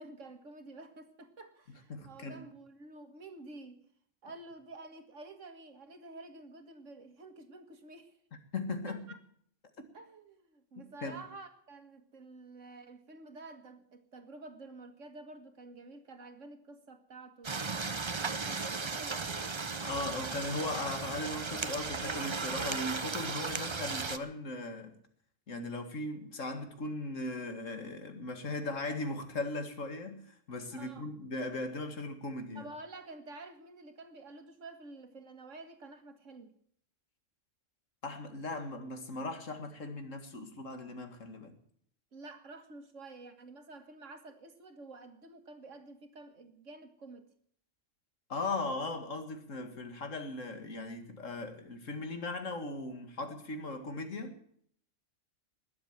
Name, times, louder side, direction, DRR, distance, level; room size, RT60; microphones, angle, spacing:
voice 1, 0.0-3.8 4.2-8.1 8.9-9.2 9.9-19.2 30.7-31.1 32.6-36.5 42.1-47.3, right 2 dB, 80° right, 2.1 m, -50 dB
voice 2, 1.9-2.5 8.5-9.0 10.8-11.2 19.8-24.9 25.5-32.7 38.0-41.5 48.3-54.4, left 2 dB, 85° left, 2.4 m, -38 dB
sound 1, 17.4-24.2, right 4 dB, 30° right, 0.7 m, -36 dB
20.5 x 7.4 x 8.8 m
omnidirectional pair, 1.3 m